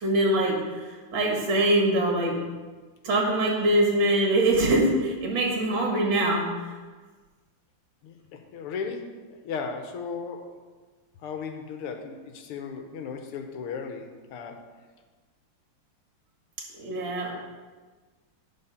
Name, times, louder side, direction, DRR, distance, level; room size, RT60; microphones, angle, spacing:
voice 1, 0.0-2.4 3.0-6.5 16.7-17.3, right 1 dB, 65° right, -1 dB, 2.4 m, -23 dB
voice 2, 8.0-10.6 11.2-14.6, left 5 dB, 80° left, 5 dB, 1.8 m, -36 dB
11.0 x 4.5 x 5.6 m, 1.4 s
omnidirectional pair, 2.4 m